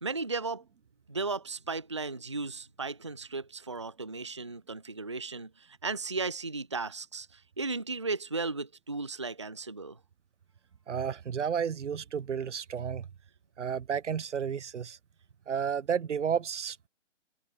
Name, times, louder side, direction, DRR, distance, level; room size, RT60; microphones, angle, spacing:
voice 1, 0.0-0.6 1.1-10.0, right 3 dB, 25° right, 0.4 m, -35 dB
voice 2, 10.9-13.1 13.6-15.0 15.5-16.9, right 7 dB, 75° right, 1.2 m, -32 dB
hypercardioid pair, 170°, 36 cm